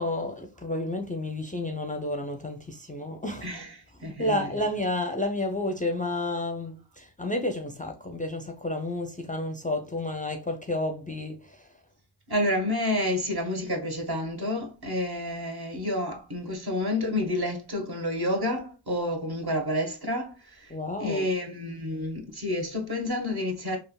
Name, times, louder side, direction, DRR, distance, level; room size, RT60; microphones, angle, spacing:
voice 1, 0.0-3.5 4.0-11.7 20.7-21.3, left 1 dB, 15° left, 0.5 m, -31 dB
voice 2, 4.0-4.4 12.3-20.7 21.0-23.8, left 1 dB, 50° right, 1.3 m, -29 dB
3.4 x 2.4 x 2.2 m
cardioid pair, 55°, 48 cm